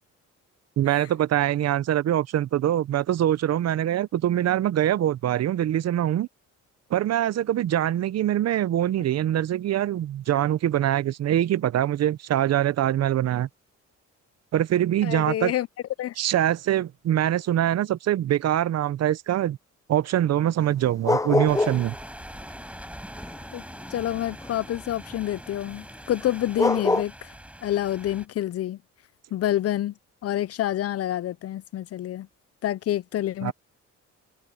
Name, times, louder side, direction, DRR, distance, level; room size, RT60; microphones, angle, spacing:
voice 1, 0.8-6.3 6.9-13.5 14.5-15.5 16.2-19.6 19.9-22.0 33.4-33.5, right 11 dB, 60° right, 0.7 m, -23 dB
voice 2, 15.0-15.7 16.0-16.1 23.5-23.6 23.9-27.3 27.6-28.8 29.3-29.9 30.2-32.3 32.6-33.5, left 12 dB, 50° left, 0.5 m, -27 dB
sound 1, 20.6-21.9 22.2-24.6 26.2-26.3 26.6-27.0, left 2 dB, 10° left, 0.7 m, -25 dB
sound 2, 21.5-28.3, right 1 dB, 5° right, 4.5 m, -43 dB
open air
cardioid pair, 90°, 30 cm